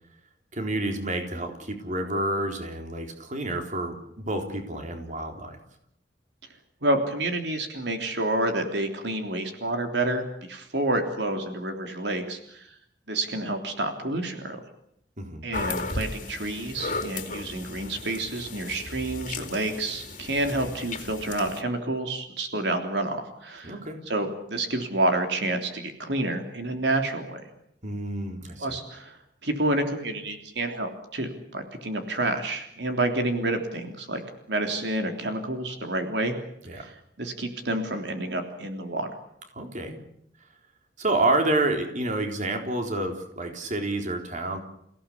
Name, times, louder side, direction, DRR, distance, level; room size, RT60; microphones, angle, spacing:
voice 1, 0.5-5.6 15.2-15.4 23.6-24.0 27.8-28.7 36.6-36.9 39.5-40.0 41.0-44.6, right 2 dB, 45° right, 4 dB, 3.9 m, -29 dB
voice 2, 6.8-12.7 13.1-14.6 15.4-23.7 24.1-27.5 28.6-29.2 29.4-34.2 34.5-36.3 36.7-39.1, right 2 dB, 75° right, 5 dB, 3.3 m, -29 dB
sound 1, 15.5-21.6, left 3 dB, 45° left, 2.5 m, -35 dB
29.5 x 17.0 x 8.5 m, 0.75 s
head